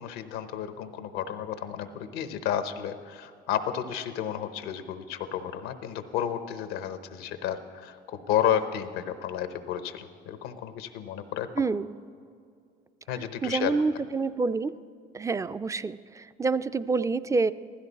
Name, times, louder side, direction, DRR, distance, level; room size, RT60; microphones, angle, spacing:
voice 1, 0.0-11.6 13.1-13.8, left 9 dB, 85° left, 10 dB, 0.8 m, -32 dB
voice 2, 11.6-11.9 13.4-14.8 15.1-17.5, right 4 dB, 15° right, 14 dB, 0.4 m, -27 dB
15.5 x 13.0 x 4.1 m, 2.3 s
supercardioid pair, 70°, 21 cm